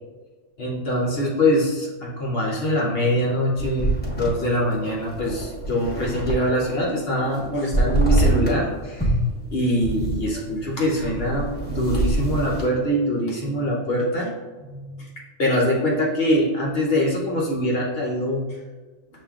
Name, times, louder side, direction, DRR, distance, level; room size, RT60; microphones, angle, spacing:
voice 1, 0.6-9.1 9.5-14.3 14.7-15.1 15.4-18.4, equal, 55° left, -3 dB, 0.9 m, -23 dB
sound 1, 3.6-6.7 7.0-8.7 9.0-12.7, right 2 dB, 10° left, 1.1 m, -25 dB
6.8 x 2.8 x 2.3 m, 1.3 s
omnidirectional pair, 1.4 m